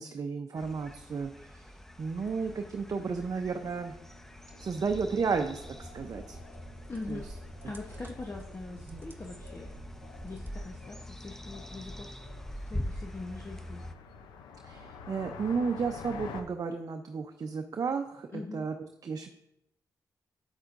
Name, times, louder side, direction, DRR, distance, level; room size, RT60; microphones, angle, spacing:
voice 1, 0.0-1.6 2.0-3.9 4.6-6.4 7.1-7.2 8.9-9.0 14.6-19.3, right 5 dB, 55° right, 5 dB, 0.6 m, -33 dB
sound 1, 0.6-13.9, left 1 dB, 5° left, 0.7 m, -44 dB
sound 2, 2.1-16.4, left 6 dB, 90° left, 0.6 m, -50 dB
sound 3, 4.8-10.6, right 2 dB, 25° right, 1.1 m, -49 dB
voice 2, 6.9-7.3 7.6-9.7 10.2-12.2 12.7-13.8 18.3-18.7, left 3 dB, 35° left, 0 dB, 0.9 m, -42 dB
8.2 x 7.8 x 2.6 m, 0.81 s
supercardioid pair, 50°, 7 cm